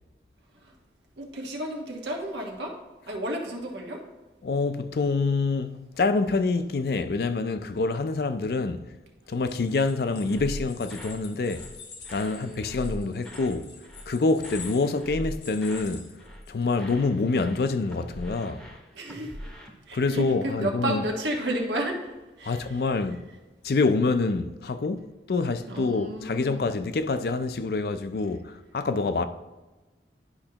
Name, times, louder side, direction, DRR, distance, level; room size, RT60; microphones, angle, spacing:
voice 1, 1.2-2.8 3.1-4.0 12.2-13.1 18.9-19.4 19.9-22.1 22.4-22.6 25.7-26.7, right 1 dB, 85° right, 1.3 m, -32 dB
voice 2, 4.4-8.9 9.3-11.7 12.1-13.7 14.1-16.1 16.5-18.6 19.9-21.0 22.4-23.2 23.6-29.2, left 3 dB, 60° left, 0.4 m, -26 dB
sound 1, 9.3-16.8, left 5 dB, 80° left, 1.1 m, -46 dB
sound 2, 10.3-11.2 11.5-11.8 12.0-13.6 13.8-14.1 14.4-16.5 16.8-19.7, equal, 5° left, 0.8 m, -41 dB
10.5 x 5.3 x 2.9 m
head